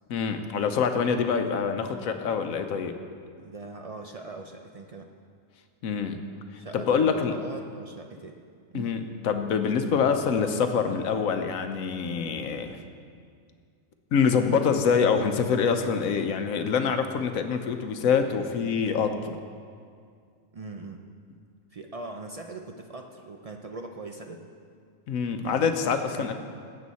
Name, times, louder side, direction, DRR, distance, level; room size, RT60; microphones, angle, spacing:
voice 1, 0.1-2.9 5.8-6.2 6.7-7.3 8.7-12.8 14.1-19.4 25.1-26.3, left 6 dB, 90° left, 7 dB, 1.2 m, -25 dB
voice 2, 3.4-5.1 6.6-8.4 8.7-8.9 20.5-21.0 21.7-24.4 25.4-26.3, right 3 dB, 70° right, 3 dB, 0.3 m, -41 dB
15.5 x 8.6 x 4.2 m, 2.2 s
omnidirectional pair, 1.4 m